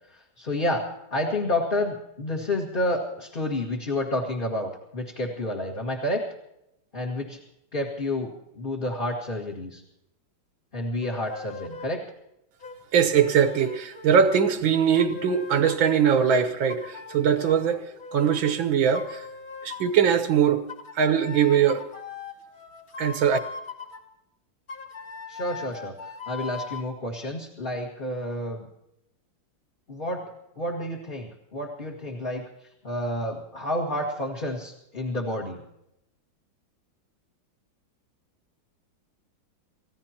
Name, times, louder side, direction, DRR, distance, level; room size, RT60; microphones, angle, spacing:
voice 1, 0.1-6.2 6.9-7.4 7.7-9.8 10.7-12.0 25.3-28.7 29.9-35.6, left 1 dB, 25° left, 1.9 m, -30 dB
sound 1, 11.0-12.0 12.6-16.0 16.7-18.6 18.9-20.0 20.7-24.0 24.7-26.9, left 4 dB, 45° left, 2.5 m, -40 dB
voice 2, 12.9-19.3 19.6-20.7 20.9-21.9 23.0-23.4, right 7 dB, 80° right, 1.8 m, -21 dB
29.5 x 15.5 x 2.9 m
omnidirectional pair, 2.1 m